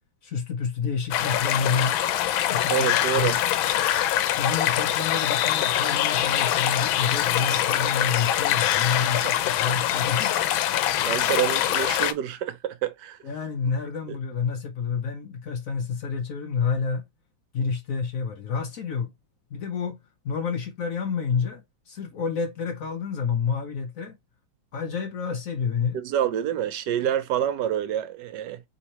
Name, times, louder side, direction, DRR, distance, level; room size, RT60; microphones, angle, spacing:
voice 1, 0.2-2.0 2.5-3.3 4.4-10.3 13.2-17.0 17.5-19.1 19.5-20.0 20.2-24.2 24.7-26.0, left 6 dB, 65° left, 0.8 m, -29 dB
sound 1, 1.1-12.1, left 12 dB, 85° left, 1.4 m, -24 dB
voice 2, 2.7-3.4 11.0-13.2 14.1-14.2 25.9-28.6, right 10 dB, 70° right, 1.2 m, -27 dB
4.3 x 3.6 x 2.9 m
omnidirectional pair, 2.1 m